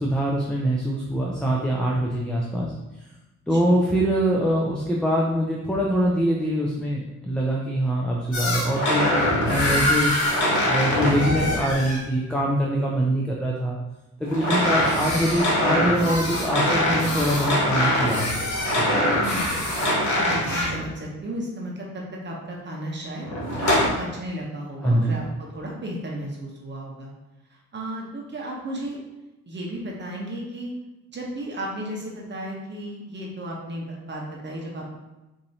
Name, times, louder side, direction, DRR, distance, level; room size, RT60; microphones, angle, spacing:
voice 1, 0.0-2.7 3.5-9.0 9.4-10.1 10.6-13.8 14.2-18.3 18.8-19.0 24.8-25.2, equal, 5° left, -2 dB, 0.4 m, -24 dB
voice 2, 3.5-3.8 19.2-19.6 20.2-27.1 27.5-29.0 29.5-30.7 31.1-35.0, right 1 dB, 35° right, -2 dB, 0.8 m, -34 dB
sound 1, 8.3-12.0 14.3-20.8 23.2-23.9, left 1 dB, 65° left, 1.3 m, -23 dB
4.4 x 2.7 x 2.7 m, 1.0 s
cardioid pair, 90°, 30 cm